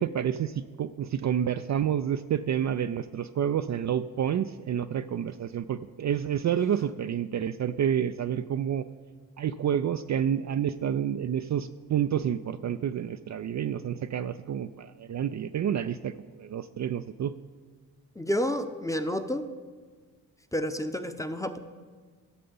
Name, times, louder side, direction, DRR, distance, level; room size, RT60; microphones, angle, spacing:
voice 1, 0.0-8.9 9.4-17.3, right 9 dB, 45° right, 9 dB, 0.5 m, -29 dB
voice 2, 18.2-19.5 20.5-21.6, equal, 10° left, 8 dB, 0.8 m, -30 dB
12.5 x 6.7 x 5.5 m, 1.5 s
supercardioid pair, 45°, 40 cm